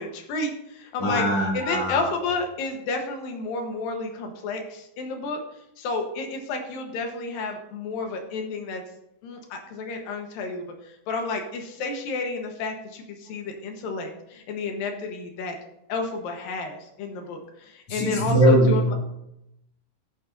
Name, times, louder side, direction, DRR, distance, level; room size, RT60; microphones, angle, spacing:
voice 1, 0.0-5.4 5.8-8.8 9.2-15.6 15.9-18.9, left 3 dB, 70° left, 3 dB, 2.4 m, -31 dB
voice 2, 1.0-2.1 17.9-18.9, right 1 dB, 40° left, -3 dB, 2.7 m, -21 dB
13.5 x 9.5 x 2.6 m, 0.84 s
omnidirectional pair, 5.2 m